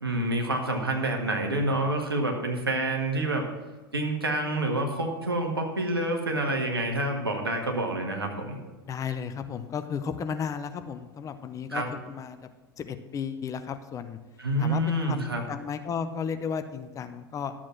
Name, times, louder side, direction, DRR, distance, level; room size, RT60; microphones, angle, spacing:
voice 1, 0.0-3.5 3.9-8.6 11.7-11.9 14.4-15.4, right 1 dB, 85° right, 2 dB, 1.7 m, -28 dB
voice 2, 8.9-12.4 12.8-14.2 14.6-17.5, left 7 dB, 25° left, 10 dB, 0.8 m, -34 dB
12.0 x 7.5 x 5.9 m, 1.2 s
figure-of-eight pair, 85°, 12 cm